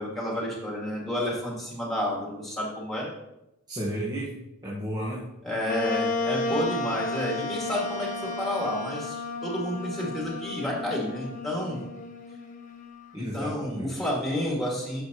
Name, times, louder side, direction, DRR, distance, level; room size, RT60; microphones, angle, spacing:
voice 1, 0.0-3.1 5.4-11.8 13.2-15.0, left 1 dB, ahead, -4 dB, 2.2 m, -30 dB
voice 2, 3.7-4.3 4.6-5.3 13.1-13.9, equal, 20° right, -7 dB, 1.5 m, -32 dB
Wind instrument woodwind instrument, 5.7-13.1, left 3 dB, 40° left, 0.9 m, -33 dB
10.5 x 6.6 x 3.0 m, 0.89 s
head